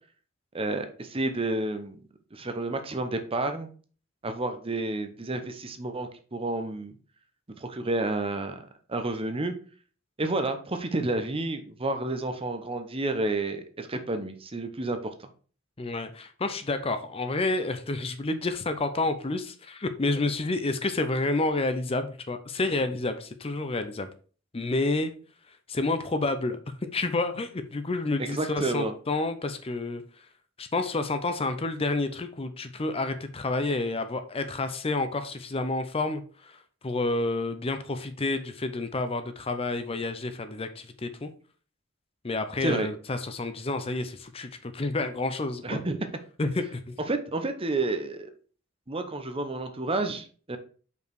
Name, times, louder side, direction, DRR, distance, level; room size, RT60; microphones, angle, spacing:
voice 1, 0.5-2.0 2.3-3.7 4.2-6.9 7.6-8.6 8.9-9.5 10.2-15.1 28.2-28.9 42.6-42.9 45.6-46.1 47.1-48.3 48.9-50.6, right 2 dB, 30° right, 8 dB, 0.8 m, -30 dB
voice 2, 15.8-24.1 24.5-25.1 25.7-30.3 30.6-41.3 42.2-45.8 46.4-47.0, left 2 dB, 30° left, 9 dB, 0.6 m, -29 dB
5.4 x 4.7 x 4.6 m, 0.40 s
head